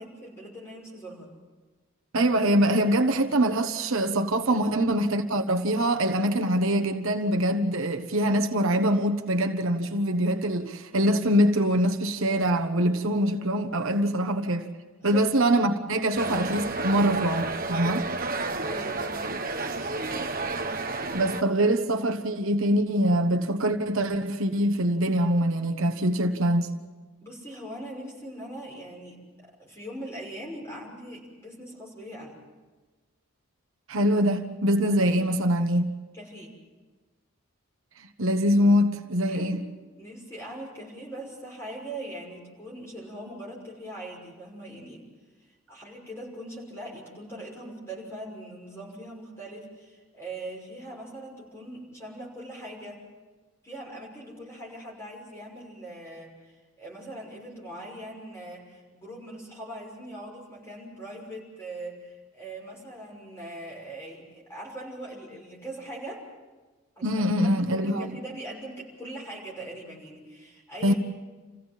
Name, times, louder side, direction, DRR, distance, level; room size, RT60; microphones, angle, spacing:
voice 1, 0.0-1.3 4.5-4.6 15.0-15.2 18.6-19.4 27.2-32.4 36.1-36.6 39.2-39.5 40.0-45.0 45.7-53.0 53.6-66.2 67.0-67.1 67.3-71.0, right 1 dB, 10° left, 6.1 m, -41 dB
voice 2, 2.1-14.7 15.0-18.1 21.1-26.7 33.9-35.9 38.0-39.6 67.0-68.1 70.8-70.9, equal, 65° right, 1.2 m, -24 dB
sound 1, 16.2-21.4, right 3 dB, 40° right, 1.1 m, -31 dB
28.0 x 16.0 x 7.5 m
head